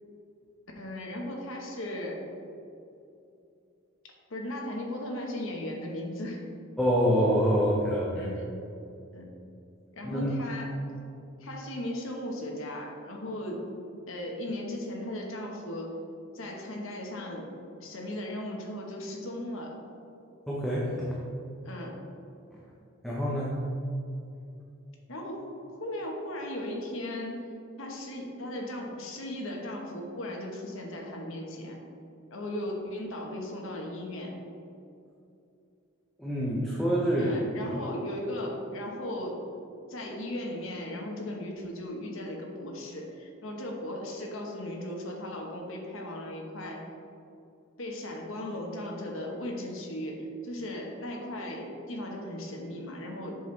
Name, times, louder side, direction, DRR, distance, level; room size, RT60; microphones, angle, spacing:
voice 1, 0.7-2.2 4.3-6.5 8.1-8.5 9.1-9.3 9.9-10.7 11.4-13.7 14.1-16.0 16.3-17.5 17.8-19.8 21.6-22.0 25.1-27.5 27.8-31.8 32.3-34.4 37.2-39.4 39.9-46.9 47.8-53.4, left 1 dB, 65° left, 0 dB, 1.1 m, -37 dB
voice 2, 6.8-8.3 10.0-10.3 20.5-21.2 22.5-22.6 23.0-23.5 36.2-37.3, equal, ahead, -6 dB, 0.7 m, -26 dB
7.4 x 5.9 x 3.2 m, 2.7 s
head